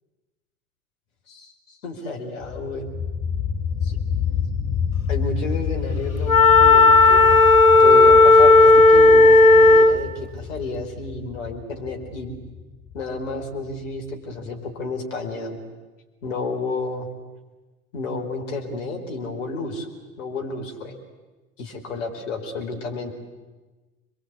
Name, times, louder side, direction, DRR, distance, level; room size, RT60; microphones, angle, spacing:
voice 1, 1.8-2.9 3.8-4.0 5.1-7.2 7.8-12.3 12.9-15.6 16.2-17.1 17.9-19.9 20.2-20.9 21.6-23.1, left 3 dB, 65° left, 3 dB, 4.7 m, -31 dB
sound 1, 2.4-14.0, left 7 dB, 35° left, 6.4 m, -29 dB
Wind instrument woodwind instrument, 6.3-10.0, left 3 dB, 90° left, 1.1 m, -12 dB
29.0 x 22.0 x 8.4 m, 1.2 s
figure-of-eight pair, 85°, 41 cm